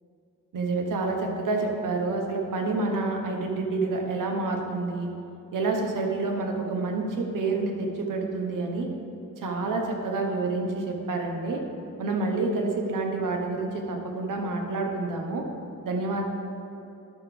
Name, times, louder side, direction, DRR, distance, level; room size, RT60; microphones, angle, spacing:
voice 1, 0.5-5.1 5.5-8.9 9.4-11.6 12.0-15.5 15.8-16.2, right 3 dB, 80° right, 2 dB, 1.1 m, -28 dB
12.0 x 6.1 x 3.3 m, 2.9 s
cardioid pair, 65°, 31 cm